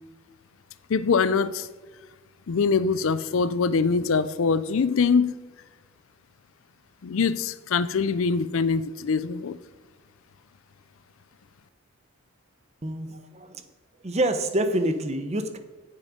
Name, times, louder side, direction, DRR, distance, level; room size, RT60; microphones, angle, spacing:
voice 1, 0.9-1.7 2.5-5.3 7.0-9.6, left 5 dB, 60° left, 16 dB, 0.4 m, -23 dB
voice 2, 12.8-13.6 14.0-15.6, right 1 dB, 30° right, 9 dB, 0.7 m, -27 dB
9.6 x 7.6 x 5.1 m, 1.3 s
head